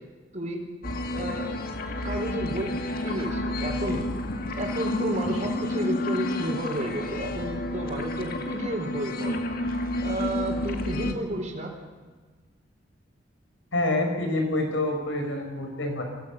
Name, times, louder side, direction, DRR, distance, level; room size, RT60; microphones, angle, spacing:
voice 1, 0.3-0.6 1.1-1.5 2.0-2.8 3.0-4.1 4.6-9.4 10.0-11.7, right 1 dB, 40° right, 1 dB, 4.2 m, -31 dB
sound 1, 0.8-11.1, left 1 dB, 50° left, 1.9 m, -30 dB
voice 2, 13.7-16.0, left 2 dB, 85° left, 3 dB, 5.3 m, -27 dB
24.0 x 17.5 x 7.3 m, 1.3 s
head